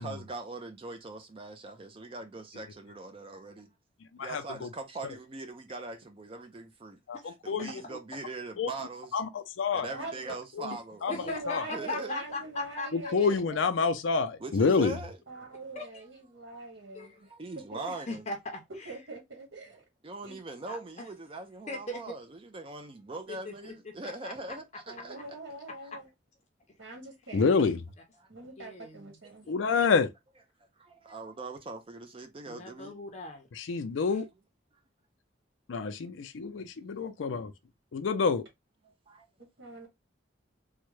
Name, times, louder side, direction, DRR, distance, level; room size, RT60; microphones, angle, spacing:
voice 1, 0.0-3.7 4.2-7.0 7.4-9.2 9.7-11.1 11.7-12.2 14.4-15.2 17.3-18.2 20.0-25.2 28.2-28.3 29.4-29.6 30.8-32.9 37.0-37.1 39.1-39.3, right 3 dB, 30° right, 0.4 m, -41 dB
voice 2, 4.2-4.7 7.1-7.2 7.5-7.7 8.6-8.7 9.1-9.9 10.6-10.8 11.0-11.1 11.5-11.6 12.9-14.9 27.3-27.8 29.5-30.1 33.6-34.2 35.7-37.5 37.9-38.4, left 5 dB, 90° left, 0.4 m, -27 dB
voice 3, 9.9-10.3 11.1-13.7 15.3-17.3 17.7-17.8 18.8-19.8 20.2-20.4 24.9-26.1 26.8-27.7 28.3-29.5 39.4-39.9, right 2 dB, 75° right, 1.5 m, -43 dB
voice 4, 11.1-12.9 15.7-16.0 16.9-17.2 17.9-18.9 20.7-20.8 21.7-22.2 23.3-24.6 25.1-25.2 28.6-29.2 32.5-33.5 34.1-34.2, left 2 dB, 35° left, 0.6 m, -39 dB
3.5 x 2.1 x 3.1 m
head